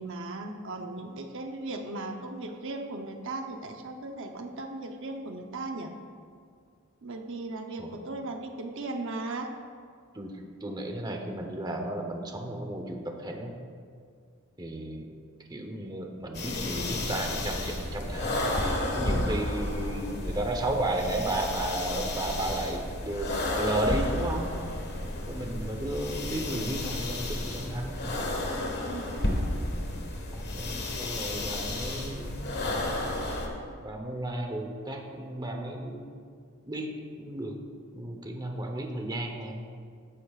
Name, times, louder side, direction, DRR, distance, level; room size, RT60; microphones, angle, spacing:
voice 1, 0.0-5.9 7.0-9.5 28.8-29.4, right 2 dB, 60° right, 4 dB, 0.8 m, -37 dB
voice 2, 10.6-13.5 14.6-15.1 15.5-24.5 25.3-28.0 30.3-33.0 33.8-36.2 36.6-36.9 37.2-37.6 37.9-39.7, right 1 dB, 20° right, 2 dB, 0.9 m, -33 dB
sound 1, 16.3-33.5, left 1 dB, 50° left, 1.5 m, -32 dB
15.0 x 11.5 x 2.4 m, 2.1 s
head